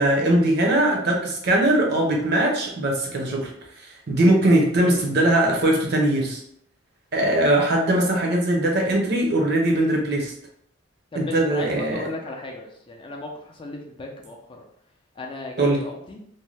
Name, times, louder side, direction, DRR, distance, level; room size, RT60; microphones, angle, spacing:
voice 1, 0.0-3.5 3.8-6.4 7.1-10.3 11.1-12.1 15.6-15.8, right 1 dB, 55° right, 0 dB, 0.7 m, -20 dB
voice 2, 11.1-14.7 15.2-16.2, left 2 dB, 25° left, 0 dB, 0.4 m, -35 dB
2.6 x 2.1 x 3.2 m, 0.70 s
head